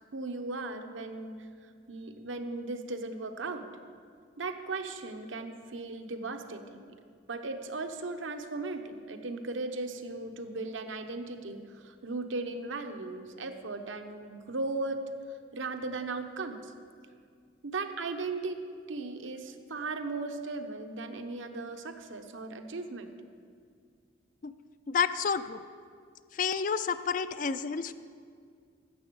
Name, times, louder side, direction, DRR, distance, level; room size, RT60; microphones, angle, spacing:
voice 1, 0.1-1.5 1.9-3.7 4.4-6.8 7.3-15.0 15.5-16.7 17.6-18.6 18.9-23.1, right 3 dB, 80° right, 6 dB, 0.9 m, -37 dB
voice 2, 24.9-25.6 26.3-27.9, left 6 dB, 40° left, 13 dB, 0.4 m, -30 dB
12.0 x 7.7 x 7.7 m, 2.1 s
head